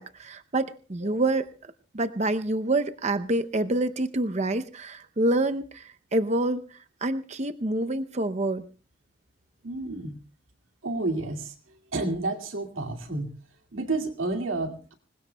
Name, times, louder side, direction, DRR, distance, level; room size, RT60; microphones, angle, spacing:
voice 1, 0.0-1.5 1.9-8.7, right 2 dB, 35° right, 10 dB, 0.7 m, -27 dB
voice 2, 9.6-10.2 10.8-11.5 11.9-13.3 13.7-14.9, right 2 dB, 90° right, 3 dB, 2.4 m, -30 dB
26.5 x 20.5 x 2.3 m, 0.36 s
head